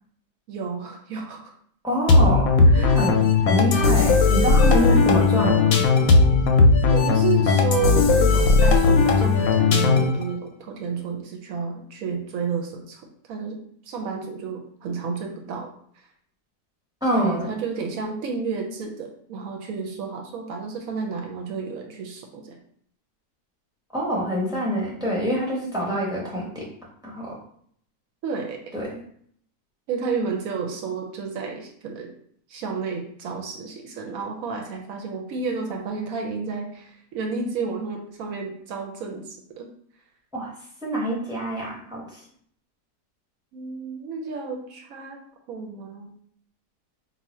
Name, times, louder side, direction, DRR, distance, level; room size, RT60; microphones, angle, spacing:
voice 1, 0.5-1.5 2.6-3.0 4.7-5.1 6.8-13.6 13.9-15.7 17.1-22.6 28.2-28.8 29.9-32.1 32.5-39.7 43.5-45.2 45.5-46.1, right 5 dB, 70° right, 2 dB, 0.9 m, -31 dB
voice 2, 1.8-5.8 17.0-17.5 23.9-26.7 27.0-27.4 28.7-29.0 40.3-40.5 40.8-42.2, equal, 5° right, -4 dB, 0.6 m, -26 dB
sound 1, 2.1-10.2, left 4 dB, 70° left, 0.9 m, -17 dB
2.7 x 2.4 x 4.2 m, 0.63 s
omnidirectional pair, 1.7 m